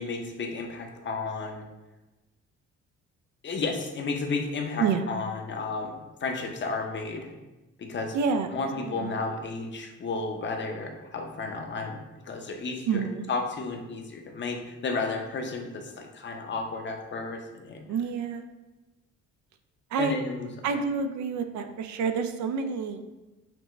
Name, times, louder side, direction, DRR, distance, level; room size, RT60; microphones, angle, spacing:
voice 1, 0.0-1.7 3.4-7.3 7.8-8.2 8.5-12.0 12.2-17.8 20.0-20.8, left 3 dB, 40° left, 3 dB, 0.7 m, -33 dB
voice 2, 8.1-8.5 8.8-9.1 12.9-13.2 17.9-18.5 19.9-20.2 20.6-23.0, right 5 dB, 70° right, 7 dB, 0.5 m, -28 dB
5.9 x 2.2 x 3.1 m, 1.1 s
cardioid pair, 90°, 30 cm